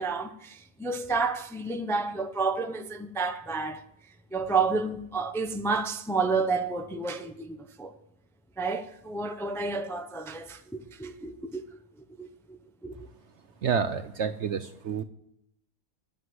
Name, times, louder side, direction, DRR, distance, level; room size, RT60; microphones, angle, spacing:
voice 1, 0.0-3.8 4.3-7.9 8.6-11.6 12.2-12.9, right 4 dB, 5° left, 0.5 m, -30 dB
voice 2, 13.6-15.0, right 7 dB, 60° right, 0.8 m, -29 dB
11.0 x 8.7 x 7.7 m
omnidirectional pair, 1.7 m